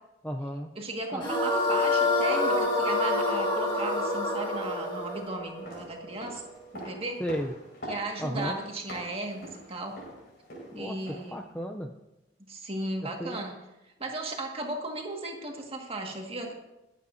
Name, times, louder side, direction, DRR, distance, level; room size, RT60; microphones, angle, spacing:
voice 1, 0.2-0.7 1.1-1.3 7.2-7.5 8.2-8.6 10.7-11.0 11.3-11.9 13.2-13.4, equal, 10° left, 2 dB, 0.5 m, -33 dB
voice 2, 0.8-6.4 6.7-7.2 7.8-10.0 10.7-11.5 12.5-13.6 14.0-16.5, right 2 dB, 30° right, 1 dB, 1.8 m, -36 dB
sound 1, 1.2-6.4, left 2 dB, 25° left, 1.8 m, -27 dB
sound 2, 5.4-11.4 11.7-11.8, equal, 60° left, 5.2 m, -44 dB
23.0 x 8.4 x 2.7 m, 0.97 s
head